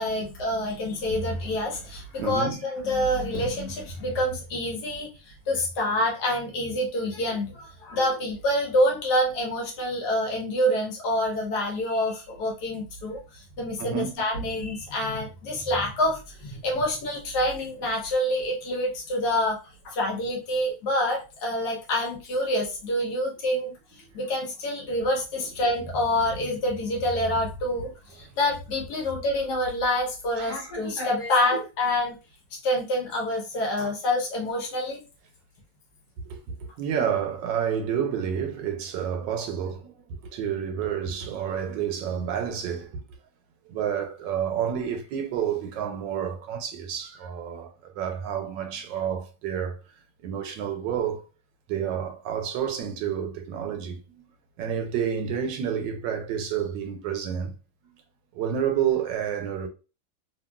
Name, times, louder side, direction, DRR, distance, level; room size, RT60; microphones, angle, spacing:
voice 1, 0.0-19.6 19.8-23.7 24.1-32.1 32.5-35.0, left 1 dB, 65° left, 1.3 m, -27 dB
voice 2, 2.2-2.6 13.8-14.3 25.4-25.5 30.4-30.7 36.3-43.0 43.7-49.8 50.2-51.2 51.7-54.2 54.6-57.5 58.3-59.7, right 8 dB, 80° right, 1.2 m, -29 dB
2.9 x 2.7 x 2.2 m
omnidirectional pair, 2.0 m